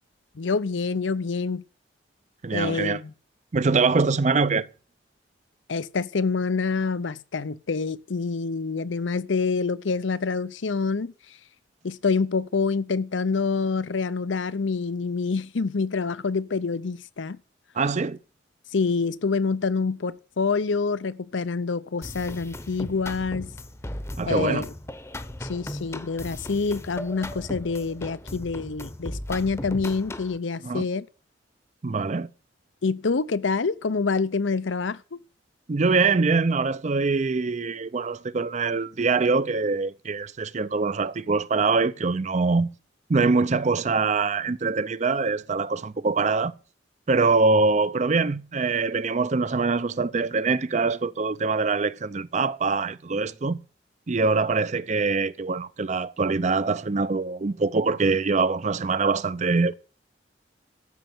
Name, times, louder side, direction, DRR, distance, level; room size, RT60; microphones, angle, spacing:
voice 1, 0.4-1.6 2.5-3.1 5.7-11.1 11.8-17.4 18.7-23.5 24.3-24.7 25.4-31.1 32.8-35.2, left 4 dB, 80° left, 0.7 m, -26 dB
voice 2, 2.4-3.0 3.5-4.7 17.8-18.2 24.2-24.6 30.6-30.9 31.8-32.3 35.7-42.7 43.1-46.5 47.1-53.6 54.1-59.7, right 4 dB, 40° right, 0.5 m, -24 dB
sound 1, 22.0-30.4, left 1 dB, 15° left, 0.8 m, -37 dB
13.0 x 6.6 x 7.8 m
head